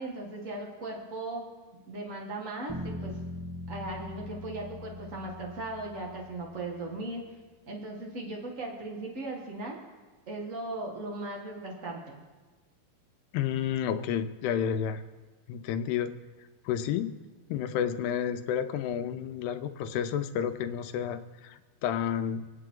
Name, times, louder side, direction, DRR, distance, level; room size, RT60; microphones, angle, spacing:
voice 1, 0.0-1.5 1.9-3.1 3.7-7.2 7.7-9.8 10.3-12.1, right 2 dB, 45° right, -1 dB, 1.0 m, -37 dB
sound 1, 2.7-6.8, left 1 dB, 10° left, 1.5 m, -41 dB
voice 2, 13.3-15.0 15.5-16.1 16.7-17.1 17.5-22.5, left 9 dB, 85° left, 9 dB, 2.8 m, -30 dB
27.5 x 9.2 x 3.8 m, 1.3 s
omnidirectional pair, 4.6 m